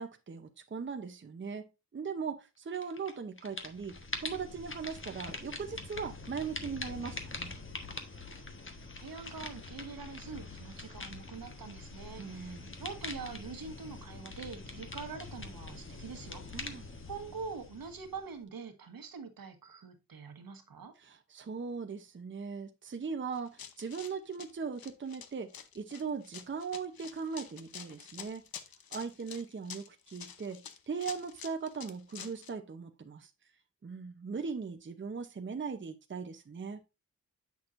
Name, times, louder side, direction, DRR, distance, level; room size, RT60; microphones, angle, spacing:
voice 1, 0.0-7.6 12.2-12.7 16.5-16.8 21.0-28.4 28.9-33.3 33.8-36.8, right 5 dB, 35° right, 0.8 m, -39 dB
sound 1, 2.7-3.1 3.4-18.4, left 3 dB, 35° left, 1.2 m, -44 dB
voice 2, 9.0-16.7 17.1-20.9, right 5 dB, 80° right, 1.4 m, -44 dB
Run, 23.3-32.5, left 8 dB, 85° left, 0.8 m, -48 dB
8.2 x 6.2 x 2.6 m
wide cardioid pair, 90°, 35 cm